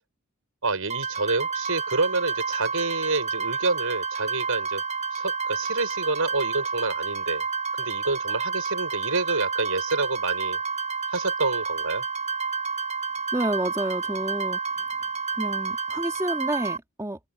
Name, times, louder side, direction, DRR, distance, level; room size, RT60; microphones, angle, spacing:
voice 1, 0.6-4.8 5.1-7.4 7.7-10.6 11.1-12.0, right 3 dB, 75° right, 6.9 m, -28 dB
sound 1, 0.9-16.8, right 5 dB, 35° right, 5.3 m, -30 dB
voice 2, 13.3-14.6 15.4-17.2, right 1 dB, 15° right, 2.2 m, -29 dB
head